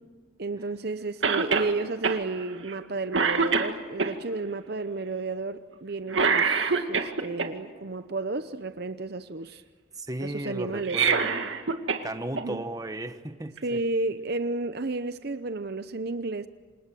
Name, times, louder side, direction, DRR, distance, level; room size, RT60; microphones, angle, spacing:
voice 1, 0.4-9.6 10.2-11.0 12.3-12.6 13.6-16.5, right 3 dB, 55° right, 11 dB, 0.7 m, -32 dB
Cough, 1.2-1.7 2.0-2.2 2.7-2.8 3.1-4.1 6.1-7.5 10.7-12.0 12.4-12.5 13.6-13.7, right 5 dB, 75° right, 2.1 m, -24 dB
voice 2, 9.9-11.4 12.0-13.8, right 1 dB, 20° right, 8 dB, 1.3 m, -35 dB
28.5 x 27.0 x 7.6 m, 1.4 s
head